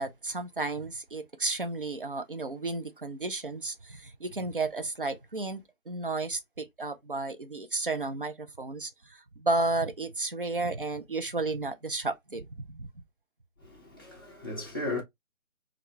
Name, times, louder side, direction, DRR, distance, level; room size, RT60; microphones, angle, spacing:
voice 1, 0.0-12.9, right 3 dB, 40° right, 0.4 m, -33 dB
voice 2, 13.6-15.0, left 2 dB, 15° left, 0.7 m, -36 dB
3.7 x 2.3 x 2.7 m
figure-of-eight pair, 150°, 42 cm